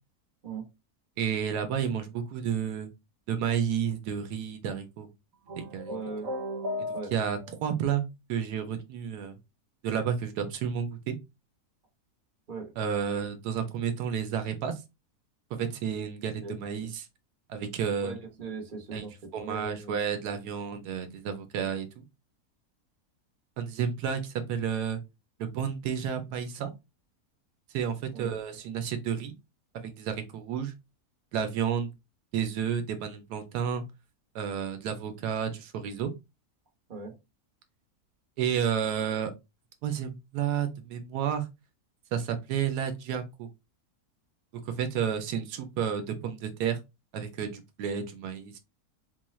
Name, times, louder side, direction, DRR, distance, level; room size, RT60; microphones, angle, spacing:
voice 1, 1.2-2.9 3.3-5.1 5.6-6.0 7.1-9.4 9.8-11.2 12.8-14.8 15.5-17.1 17.5-18.1 18.9-19.0 19.3-22.0 23.6-25.0 25.4-26.7 27.7-29.3 29.7-30.7 31.3-31.9 32.3-33.8 34.3-36.1 38.4-39.3 39.8-41.4 42.1-43.5 44.7-46.8 47.1-48.6, right 8 dB, 90° right, 7 dB, 1.2 m, -31 dB
sound 1, 5.5-7.5, left 1 dB, 65° right, 1.1 m, -35 dB
voice 2, 5.9-6.3 6.9-7.1 12.5-12.7 16.4-16.6 18.0-20.0 28.1-28.3 36.9-37.1, right 4 dB, 35° right, 1 dB, 1.1 m, -39 dB
4.1 x 2.3 x 3.0 m, 0.24 s
omnidirectional pair, 1.7 m